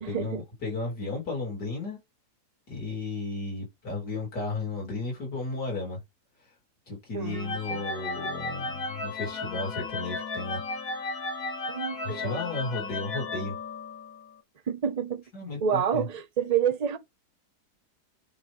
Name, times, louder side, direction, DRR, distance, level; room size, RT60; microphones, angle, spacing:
voice 1, 0.0-0.4 7.1-7.8 11.7-12.4 14.7-15.2 15.6-17.0, right 7 dB, 40° right, 0.6 m, -28 dB
voice 2, 0.6-2.0 2.7-6.0 6.9-10.6 12.0-13.5 15.3-16.0, left 3 dB, 85° left, 4.4 m, -34 dB
sound 1, 7.3-14.3, left 3 dB, 55° left, 2.3 m, -34 dB
9.1 x 3.5 x 5.2 m
omnidirectional pair, 1.7 m